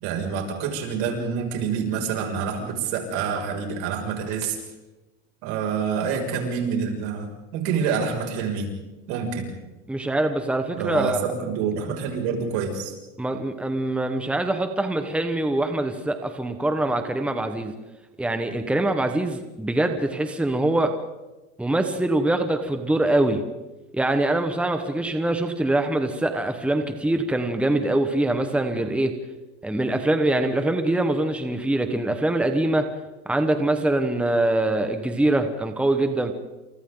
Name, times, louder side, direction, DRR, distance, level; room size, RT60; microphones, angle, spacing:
voice 1, 0.0-4.6 5.4-8.7 9.1-9.5 10.7-12.9, right 6 dB, 75° right, 1 dB, 6.6 m, -27 dB
voice 2, 9.9-11.2 13.2-17.7 18.2-20.9 21.6-23.4 23.9-29.1 29.6-32.9 33.2-36.3, right 1 dB, 5° right, 6 dB, 1.4 m, -23 dB
30.0 x 28.0 x 4.0 m, 1.1 s
cardioid pair, 150°, 30 cm